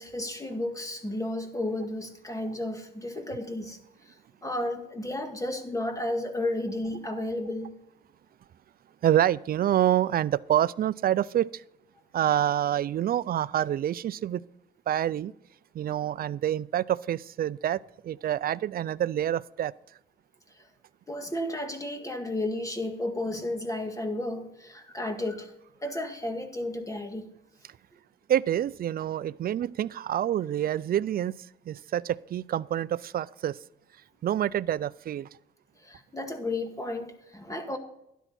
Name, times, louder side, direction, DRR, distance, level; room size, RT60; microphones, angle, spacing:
voice 1, 0.0-3.8 4.4-7.7 21.1-25.5 25.8-27.3 35.8-37.8, left 1 dB, 15° left, 6 dB, 1.9 m, -33 dB
voice 2, 9.0-11.5 12.1-14.4 14.9-15.3 15.7-19.7 28.3-31.3 31.7-33.6 34.2-35.3, right 11 dB, 50° right, 19 dB, 0.4 m, -27 dB
12.5 x 10.0 x 4.2 m, 0.81 s
cardioid pair, 90°, 20 cm